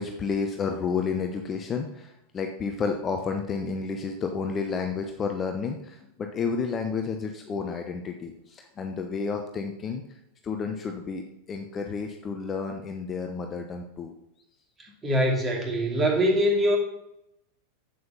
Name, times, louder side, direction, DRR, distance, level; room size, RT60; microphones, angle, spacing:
voice 1, 0.0-10.0 10.4-14.1 14.9-15.0, left 5 dB, 25° left, 4 dB, 0.9 m, -31 dB
voice 2, 14.8-16.8, equal, 20° right, 0 dB, 2.6 m, -23 dB
7.9 x 7.8 x 5.5 m, 0.82 s
figure-of-eight pair, 90°, 0 cm